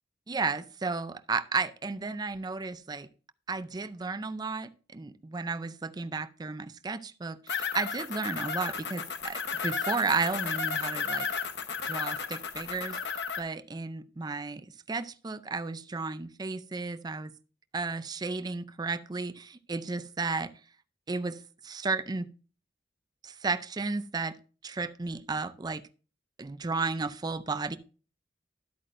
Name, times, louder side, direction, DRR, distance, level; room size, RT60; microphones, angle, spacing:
voice 1, 0.3-3.1 3.5-11.3 11.8-13.0 13.4-17.3 17.7-20.5 21.1-22.3 23.2-24.4 24.6-25.8 26.4-27.8, right 4 dB, 25° right, 0.4 m, -33 dB
sound 1, 7.5-13.4, left 5 dB, 70° left, 1.0 m, -33 dB
12.0 x 8.4 x 2.6 m
head